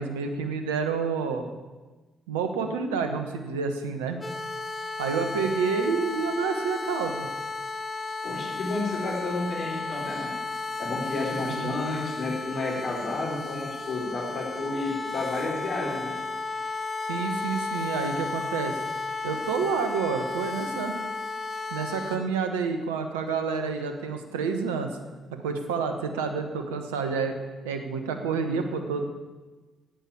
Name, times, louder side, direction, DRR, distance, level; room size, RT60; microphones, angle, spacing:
voice 1, 0.0-1.5 2.3-4.2 5.0-7.3 11.4-11.8 17.1-18.8 19.2-20.9 21.7-24.9 25.3-27.4 27.6-29.0, right 5 dB, 80° right, 6 dB, 1.1 m, -29 dB
sound 1, 4.2-22.2, left 3 dB, 25° left, 2.4 m, -34 dB
voice 2, 8.2-10.3 10.8-16.2, left 2 dB, 55° left, -3 dB, 4.9 m, -31 dB
10.5 x 8.7 x 9.1 m, 1.3 s
hypercardioid pair, 45°, 0 cm